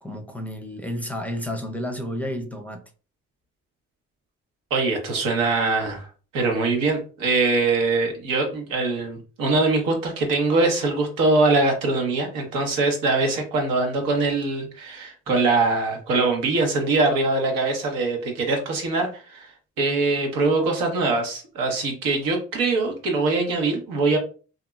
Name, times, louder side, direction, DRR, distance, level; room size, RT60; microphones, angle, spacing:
voice 1, 0.0-2.8, equal, 5° left, 0.5 m, -31 dB
voice 2, 4.7-6.1 6.3-19.5 19.8-24.2, right 3 dB, 90° right, 0.9 m, -23 dB
2.8 x 2.5 x 2.2 m
supercardioid pair, 60°, 32 cm